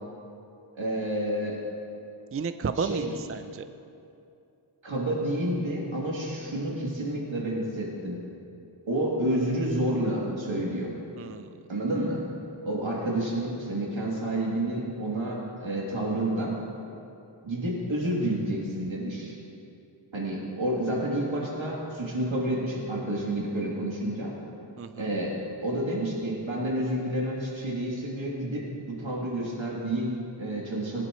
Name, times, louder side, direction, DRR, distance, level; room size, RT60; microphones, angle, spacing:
voice 1, 0.8-1.6 2.8-3.1 4.8-8.2 8.9-10.9 11.7-12.2 12.6-16.6 17.4-19.3 20.1-24.3 25.0-31.0, right 1 dB, 75° right, -4 dB, 3.1 m, -29 dB
voice 2, 2.3-3.6 11.2-11.5 24.8-25.1, right 5 dB, 30° right, 10 dB, 0.4 m, -32 dB
21.0 x 10.5 x 3.2 m, 2.6 s
wide cardioid pair, 70°, 47 cm